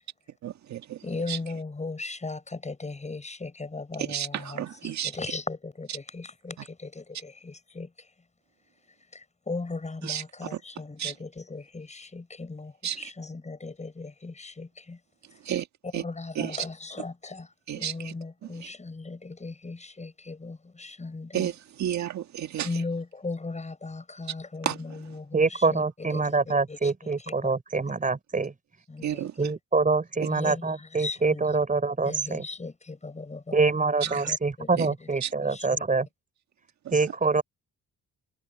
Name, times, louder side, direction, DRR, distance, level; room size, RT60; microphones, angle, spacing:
voice 1, 0.4-1.4 4.0-5.2 6.6-6.7 10.0-10.6 11.0-11.2 12.8-13.1 15.4-15.7 15.9-16.0 16.4-16.7 17.7-18.1 18.4-18.7 21.3-22.8 24.6-25.0 29.0-29.3 30.2-30.3 34.0-34.3 34.8-34.9 35.2-35.3, right 10 dB, 65° right, 1.8 m, -32 dB
voice 2, 1.0-7.9 9.1-15.0 15.9-17.5 17.7-21.5 22.6-25.8 26.1-26.4 26.7-27.1 27.4-27.5 28.9-29.3 30.3-31.4 32.0-33.6 34.0-34.9 35.5-35.8, left 3 dB, 25° left, 7.7 m, -37 dB
voice 3, 25.3-28.5 29.4-32.5 33.5-36.1 36.9-37.4, right 4 dB, 25° right, 6.0 m, -25 dB
cardioid pair, 90°, 30 cm